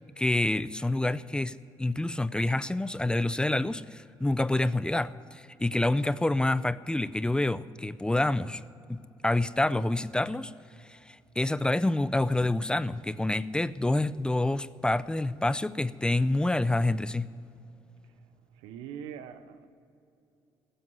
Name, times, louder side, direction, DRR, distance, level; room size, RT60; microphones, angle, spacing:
voice 1, 0.2-8.6 8.9-10.5 10.9-17.3, left 2 dB, 10° left, 0.5 m, -27 dB
voice 2, 18.5-19.7, right 8 dB, 90° right, 0.8 m, -42 dB
15.5 x 7.8 x 9.5 m
supercardioid pair, 70°, 9 cm